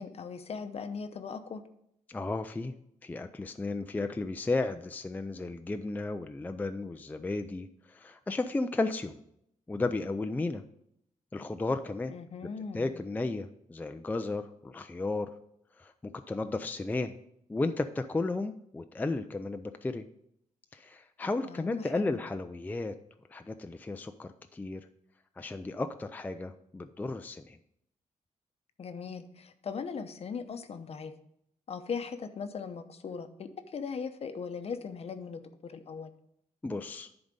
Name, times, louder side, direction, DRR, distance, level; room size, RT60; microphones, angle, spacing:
voice 1, 0.0-1.6 12.1-12.9 21.4-22.2 28.8-31.1 31.7-36.1, left 5 dB, 50° left, 9 dB, 0.7 m, -39 dB
voice 2, 2.1-2.7 3.0-9.2 9.7-10.6 11.3-12.1 12.7-15.3 15.8-17.2 17.5-20.0 20.7-22.9 23.3-24.9 25.4-27.6 36.6-37.1, left 3 dB, 15° left, 8 dB, 0.4 m, -34 dB
10.5 x 4.0 x 5.3 m, 0.74 s
cardioid pair, 110°, 13 cm